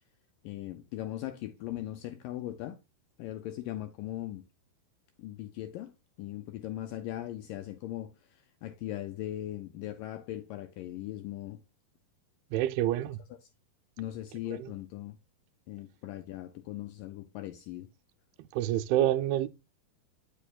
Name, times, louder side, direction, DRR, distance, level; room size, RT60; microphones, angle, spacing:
voice 1, 0.4-2.8 3.2-4.4 5.2-5.9 6.2-11.6 14.0-15.2 15.7-17.9, left 14 dB, 80° left, 1.9 m, -39 dB
voice 2, 12.5-13.2 14.5-14.7 18.5-19.5, right 13 dB, 85° right, 2.6 m, -27 dB
9.0 x 7.0 x 2.3 m
omnidirectional pair, 4.5 m